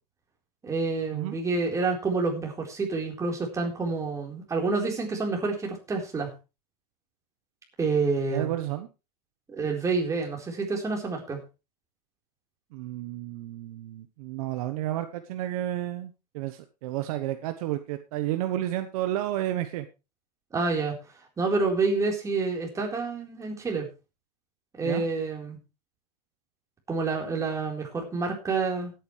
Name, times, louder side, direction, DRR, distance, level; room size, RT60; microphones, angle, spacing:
voice 1, 0.6-6.3 7.8-8.5 9.5-11.4 20.5-21.0 21.4-23.9 24.7-25.6 26.9-28.9, right 4 dB, 15° right, 0 dB, 4.1 m, -28 dB
voice 2, 8.3-8.9 12.7-19.9 24.8-25.0, right 14 dB, 60° right, 9 dB, 1.1 m, -31 dB
18.0 x 9.3 x 3.2 m, 0.29 s
supercardioid pair, 135°, 21 cm